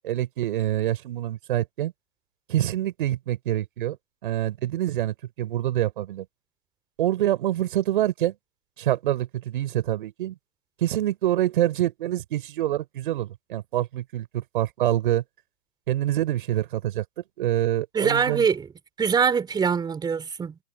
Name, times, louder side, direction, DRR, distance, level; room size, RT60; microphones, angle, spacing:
voice 1, 0.0-1.9 2.5-4.0 4.2-6.3 7.0-8.3 8.8-10.4 10.8-15.2 15.9-17.0 17.4-18.5, right 13 dB, 55° right, 7.1 m, -26 dB
voice 2, 17.9-18.7 19.0-20.6, right 6 dB, 15° right, 4.1 m, -23 dB
hypercardioid pair, 120°, 32 cm